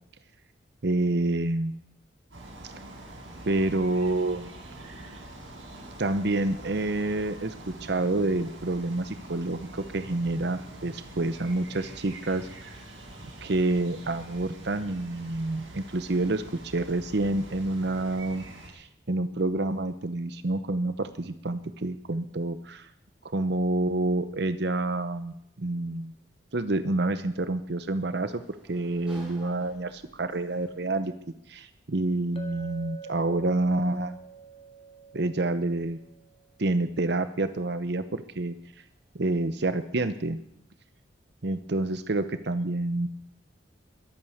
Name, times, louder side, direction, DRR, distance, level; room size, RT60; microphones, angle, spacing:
voice 1, 0.8-1.8 3.5-4.5 6.0-12.5 13.4-18.5 18.7-22.9 23.3-26.1 26.5-28.4 28.7-31.1 31.5-34.2 35.1-36.0 36.6-38.6 39.1-40.4 41.4-43.1, right 2 dB, 60° right, 11 dB, 0.8 m, -28 dB
sound 1, 2.3-18.7, right 1 dB, 85° right, 6.7 m, -45 dB
Sliding door, 26.8-39.4, right 1 dB, 5° right, 4.7 m, -58 dB
Chink clink, 32.4-36.5, right 4 dB, 30° left, 1.9 m, -46 dB
22.0 x 9.0 x 6.5 m, 0.76 s
head